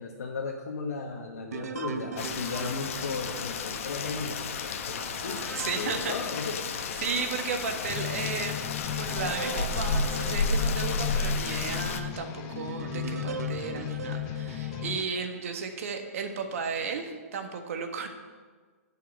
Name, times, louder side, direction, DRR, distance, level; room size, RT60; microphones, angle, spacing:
voice 1, 0.0-6.6, left 4 dB, 80° left, -1 dB, 1.4 m, -35 dB
sound 1, 1.5-7.3 7.8-7.9 8.5-15.7 16.3-16.9, right 6 dB, 80° right, 0.8 m, -42 dB
Rain, 2.2-12.0, left 4 dB, 55° left, 1.0 m, -32 dB
voice 2, 5.5-6.1 7.0-8.7 9.0-18.1, right 5 dB, 60° right, 5 dB, 1.5 m, -34 dB
sound 2, 7.9-15.0, left 13 dB, 30° left, 0.6 m, -36 dB
10.0 x 5.8 x 8.2 m, 1.5 s
hypercardioid pair, 145°, 8 cm